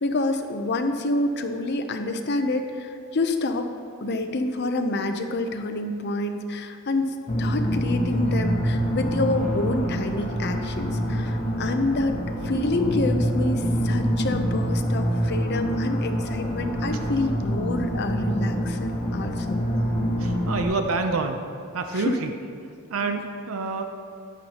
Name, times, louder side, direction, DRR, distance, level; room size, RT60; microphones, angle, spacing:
voice 1, 0.0-3.7 4.0-12.2 12.4-19.6 21.9-22.2 23.0-23.2, left 2 dB, 55° left, 6 dB, 0.7 m, -27 dB
sound 1, 7.3-20.6, equal, 35° left, 1.3 m, -26 dB
voice 2, 20.2-21.4 21.7-22.3 22.9-23.8, right 3 dB, 85° right, 5 dB, 0.6 m, -27 dB
11.0 x 9.2 x 2.9 m, 2.3 s
head